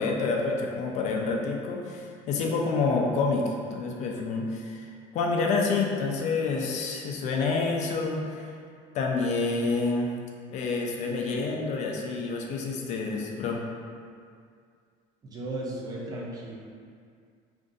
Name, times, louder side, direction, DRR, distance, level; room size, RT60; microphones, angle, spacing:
voice 1, 0.0-8.5 8.9-10.1 10.5-13.6, left 4 dB, 50° left, 0 dB, 0.4 m, -28 dB
voice 2, 15.2-16.5, right 2 dB, 25° right, -4 dB, 0.6 m, -35 dB
2.6 x 2.5 x 3.7 m, 2.2 s
cardioid pair, 150°, 16 cm